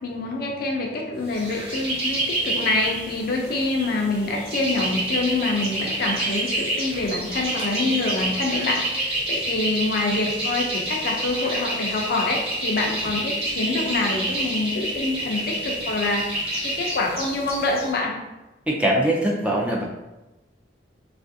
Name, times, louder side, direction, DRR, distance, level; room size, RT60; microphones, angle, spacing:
voice 1, 0.0-16.2 16.6-18.1, left 2 dB, 55° left, 0 dB, 0.5 m, -26 dB
sound 1, 1.3-17.9, right 1 dB, 35° right, 0.9 m, -28 dB
voice 2, 18.7-19.8, right 1 dB, 5° right, -3 dB, 0.4 m, -22 dB
3.2 x 2.5 x 2.6 m, 1.0 s
head